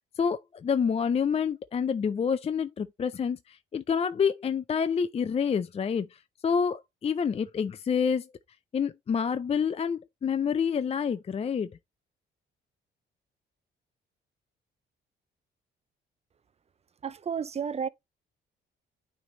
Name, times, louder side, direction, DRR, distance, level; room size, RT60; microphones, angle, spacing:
voice 1, 0.2-8.3 8.7-11.7, left 6 dB, 30° left, 0.4 m, -28 dB
voice 2, 17.0-17.9, right 7 dB, 30° right, 0.6 m, -32 dB
9.1 x 3.3 x 3.9 m
cardioid pair, 90°, 20 cm